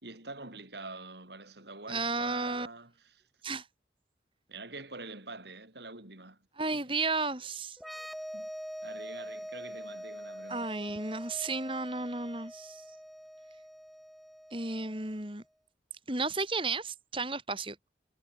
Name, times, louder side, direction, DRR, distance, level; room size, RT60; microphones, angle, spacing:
voice 1, 0.0-3.2 4.5-6.4 6.7-7.0 8.3-8.5 8.8-10.7, right 3 dB, 70° right, 5.8 m, -45 dB
voice 2, 1.9-2.7 3.4-3.6 6.6-7.8 10.5-12.8 14.5-15.4 16.1-17.8, right 3 dB, 30° right, 4.4 m, -33 dB
sound 1, 7.8-15.3, equal, ahead, 2.6 m, -44 dB
head